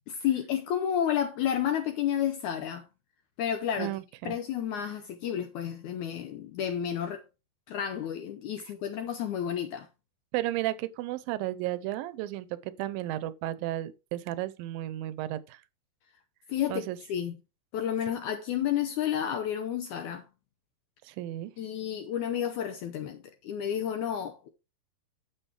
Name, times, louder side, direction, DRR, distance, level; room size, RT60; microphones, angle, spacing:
voice 1, 0.1-2.9 3.4-3.9 4.3-7.2 7.7-9.9 16.5-17.3 17.7-20.2 21.6-24.5, left 9 dB, 75° left, 1.8 m, -31 dB
voice 2, 3.8-4.3 10.3-15.6 16.7-17.0 21.0-21.5, right 15 dB, 80° right, 2.3 m, -33 dB
9.9 x 7.5 x 3.2 m
omnidirectional pair, 4.3 m